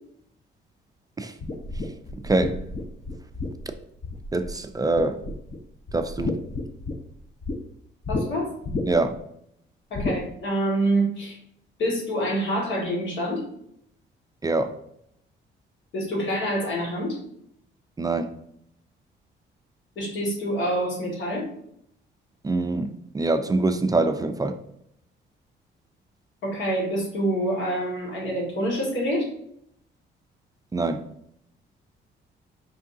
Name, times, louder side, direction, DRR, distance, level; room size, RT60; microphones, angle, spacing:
sound 1, 1.4-4.6 5.0-5.6 5.9-7.6 8.0-8.2 8.6-9.2 9.9-10.2, left 2 dB, 30° left, 0.7 m, -31 dB
voice 1, 2.2-2.6 4.3-5.2 5.9-6.4 8.9-9.2 14.4-14.7 18.0-18.3 22.4-24.6 30.7-31.0, right 2 dB, 20° right, 7 dB, 0.4 m, -24 dB
voice 2, 8.1-8.5 9.9-11.4 11.8-13.4 15.9-17.2 19.9-21.5 26.4-29.3, right 1 dB, 70° left, -2 dB, 1.6 m, -26 dB
4.7 x 3.5 x 2.6 m, 0.72 s
cardioid pair, 90°, 20 cm